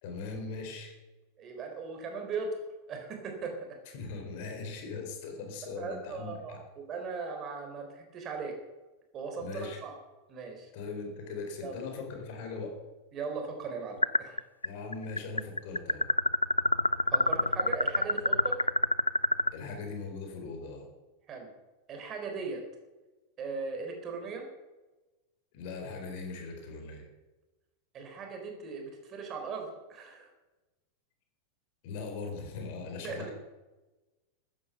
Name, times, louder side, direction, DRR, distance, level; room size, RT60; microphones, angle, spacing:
voice 1, 0.0-0.9 3.9-6.6 9.4-9.8 10.7-12.8 14.6-16.1 19.5-20.9 25.5-27.0 31.8-33.3, left 4 dB, 50° left, 4 dB, 4.0 m, -40 dB
voice 2, 1.4-2.6 2.9-3.8 5.8-8.5 9.1-10.0 10.3-10.7 11.6-11.8 13.1-14.4 17.1-18.6 21.3-21.5 21.9-22.6 23.4-24.5 27.9-30.3 33.0-33.3, right 4 dB, 30° right, 3 dB, 3.8 m, -38 dB
sound 1, 14.0-14.7 14.9-19.5, left 2 dB, 85° left, 0.3 m, -26 dB
14.5 x 10.0 x 6.9 m, 1.1 s
figure-of-eight pair, 90°, 0 cm